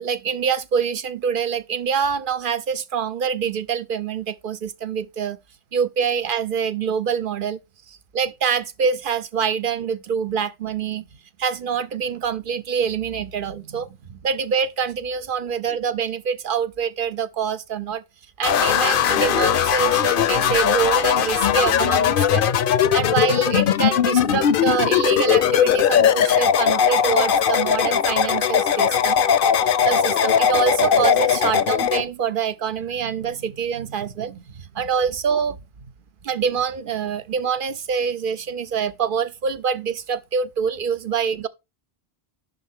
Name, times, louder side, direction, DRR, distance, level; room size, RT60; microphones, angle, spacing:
voice 1, 0.0-5.4 5.7-7.6 7.9-11.1 11.4-18.0 18.4-22.4 22.9-29.2 29.6-35.6 36.2-41.5, right 6 dB, 60° right, 0.9 m, -25 dB
sound 1, 18.4-32.0, left 8 dB, 65° left, 0.8 m, -19 dB
11.0 x 3.7 x 3.7 m
omnidirectional pair, 1.0 m